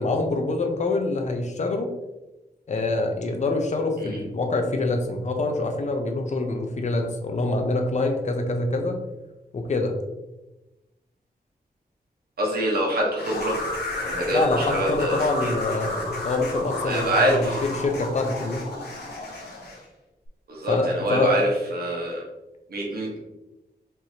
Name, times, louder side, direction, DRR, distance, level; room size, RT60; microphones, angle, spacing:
voice 1, 0.0-1.9 2.7-9.0 9.5-10.0 14.3-18.6 20.7-21.3, left 2 dB, 45° left, 4 dB, 0.6 m, -25 dB
voice 2, 12.4-13.5 14.0-15.5 16.9-17.6 20.5-21.4 21.7-22.2 22.7-23.2, right 1 dB, 70° right, -3 dB, 1.3 m, -25 dB
sound 1, 13.2-19.8, left 2 dB, 85° left, 1.3 m, -31 dB
5.2 x 3.0 x 2.8 m, 1.0 s
wide cardioid pair, 150°, 16 cm